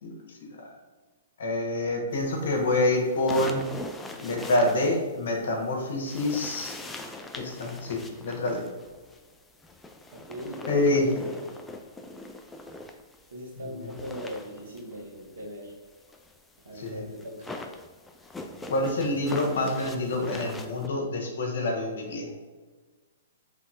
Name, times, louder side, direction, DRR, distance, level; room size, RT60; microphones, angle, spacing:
voice 1, 0.0-0.7 1.4-3.6 4.1-6.7 7.4-8.6 10.7-11.0 16.8-17.0 18.7-22.3, left 2 dB, 70° left, 1 dB, 0.9 m, -27 dB
sound 1, 2.4-5.6 6.0-13.3 13.6-20.9, left 2 dB, 10° left, 0.3 m, -41 dB
voice 2, 10.1-11.5 13.3-15.7 16.6-17.5, equal, 75° right, -2 dB, 1.2 m, -40 dB
4.0 x 3.2 x 2.4 m, 1.4 s
hypercardioid pair, 125°, 0 cm